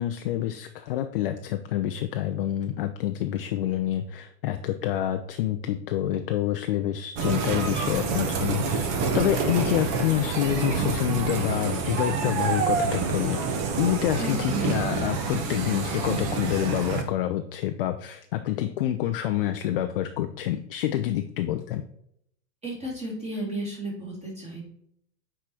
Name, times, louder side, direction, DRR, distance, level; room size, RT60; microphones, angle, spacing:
voice 1, 0.0-13.4 13.8-21.8, left 12 dB, 35° left, 7 dB, 0.5 m, -27 dB
sound 1, 7.2-17.0, right 5 dB, 35° right, 1.3 m, -27 dB
voice 2, 14.2-15.0 22.6-24.6, right 2 dB, 15° right, -3 dB, 3.0 m, -33 dB
8.1 x 5.0 x 4.3 m, 0.72 s
hypercardioid pair, 140°, 50 cm